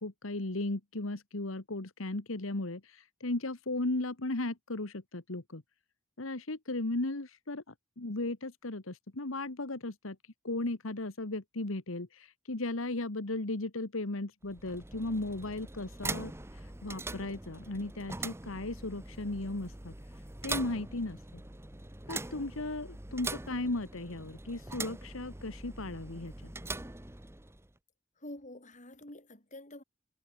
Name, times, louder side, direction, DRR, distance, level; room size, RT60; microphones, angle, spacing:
voice 1, 0.0-5.6 6.2-10.2 10.4-19.9 20.4-21.4 22.1-26.5, left 2 dB, 75° left, 1.7 m, -36 dB
sound 1, 14.4-27.7, right 2 dB, 10° right, 1.0 m, -42 dB
voice 2, 28.2-29.8, left 1 dB, 35° left, 6.4 m, -47 dB
head